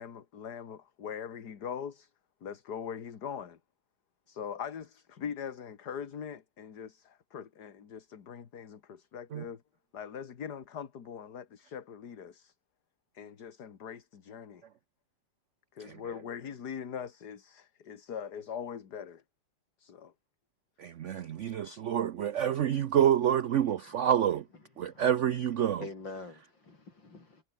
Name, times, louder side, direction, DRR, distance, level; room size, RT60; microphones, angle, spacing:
voice 1, 0.0-2.1 2.4-3.6 4.3-9.6 9.9-12.5 13.1-14.6 15.7-19.2 19.8-20.1, left 7 dB, 60° left, 2.2 m, -41 dB
voice 2, 20.8-24.5 24.8-25.8, right 10 dB, 65° right, 0.7 m, -28 dB
voice 3, 25.5-27.4, left 3 dB, 80° left, 5.7 m, -46 dB
omnidirectional pair, 2.0 m